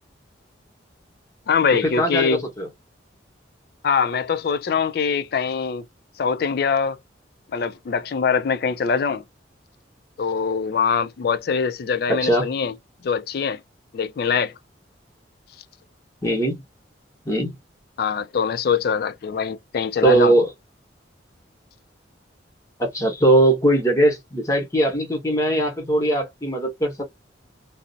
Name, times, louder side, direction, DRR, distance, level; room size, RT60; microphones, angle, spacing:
voice 1, 1.5-2.4 3.8-5.8 6.2-7.0 7.5-9.2 10.2-12.7 13.0-13.6 13.9-14.5 18.0-20.3, left 6 dB, 55° left, 0.3 m, -23 dB
voice 2, 2.0-2.7 12.2-12.5 16.2-16.6 17.2-17.5 20.0-20.5 22.8-27.0, right 1 dB, 15° left, 0.9 m, -20 dB
2.4 x 2.0 x 2.6 m
head